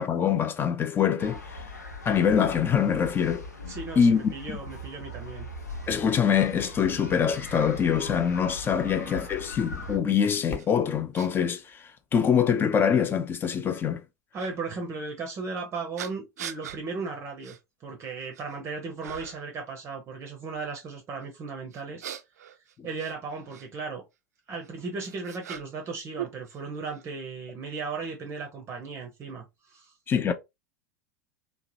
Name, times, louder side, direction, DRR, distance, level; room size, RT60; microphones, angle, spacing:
voice 1, 0.0-1.6 2.1-3.4 4.0-4.2 5.9-11.8 12.1-14.0 30.1-30.3, left 7 dB, 25° left, 0.4 m, -24 dB
sound 1, 1.2-10.0, left 2 dB, 85° left, 0.6 m, -40 dB
voice 2, 3.7-5.5 14.3-17.6 17.8-22.0 22.8-24.0 24.5-29.9, right 4 dB, 30° right, 0.6 m, -36 dB
Fireworks, 10.5-13.4, left 5 dB, 45° left, 0.9 m, -44 dB
sound 2, 10.6-10.7 11.1-11.3 12.2-12.3 14.3-14.5 16.0-16.8 17.4-17.6 18.0-18.6 19.0-19.5 21.7-23.7 24.6-25.9 26.2-27.0, right 10 dB, 75° right, 0.4 m, -41 dB
2.8 x 2.1 x 2.6 m
figure-of-eight pair, 85°, 9 cm